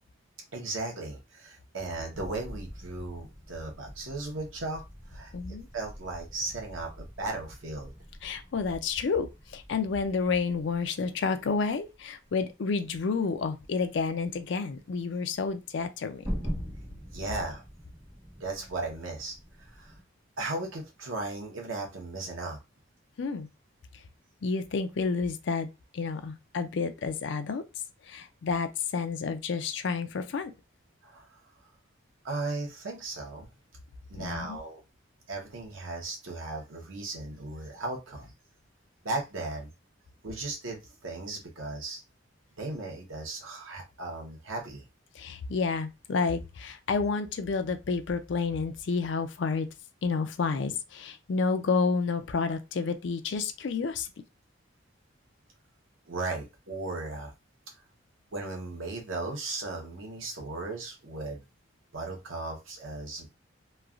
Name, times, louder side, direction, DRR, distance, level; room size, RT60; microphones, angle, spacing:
voice 1, 0.5-4.8 5.1-5.3 5.7-7.9 17.1-17.6 18.4-19.9 20.4-22.6 31.0-31.4 32.2-33.5 34.1-34.8 35.3-38.3 39.0-39.7 40.2-42.0 42.6-44.8 56.1-57.3 58.3-61.4 61.9-63.3, right 2 dB, 80° right, 0.9 m, -36 dB
sound 1, 2.1-20.0, equal, 10° right, 1.1 m, -44 dB
voice 2, 5.3-5.7 8.2-16.3 23.2-23.5 24.4-27.6 28.0-30.5 34.2-34.6 45.1-49.7 50.0-54.1, left 4 dB, 60° left, 0.4 m, -30 dB
3.1 x 2.3 x 2.4 m
head